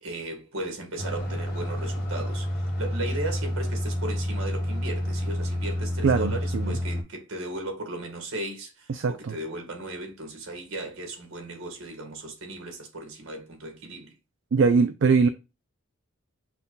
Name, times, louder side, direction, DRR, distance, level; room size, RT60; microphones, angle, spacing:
voice 1, 0.0-14.1, right 2 dB, 75° right, 1.5 m, -36 dB
sound 1, 1.0-7.0, equal, 55° left, 1.3 m, -29 dB
voice 2, 6.0-6.8 8.9-9.3 14.5-15.3, right 5 dB, 60° right, 0.4 m, -22 dB
5.8 x 2.3 x 3.9 m
head